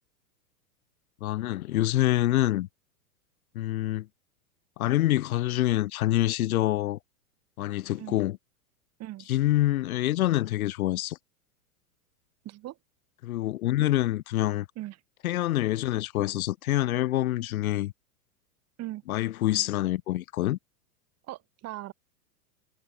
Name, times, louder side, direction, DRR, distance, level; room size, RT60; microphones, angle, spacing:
voice 1, 1.2-2.7 3.5-4.1 4.8-7.0 7.6-8.4 9.3-11.2 13.2-14.7 15.2-17.9 19.1-20.6, left 15 dB, 65° left, 1.4 m, -26 dB
voice 2, 9.0-9.3 12.4-12.8 14.8-15.0 18.8-19.0 21.3-21.9, right 15 dB, 35° right, 2.5 m, -39 dB
hypercardioid pair, 110°, 45 cm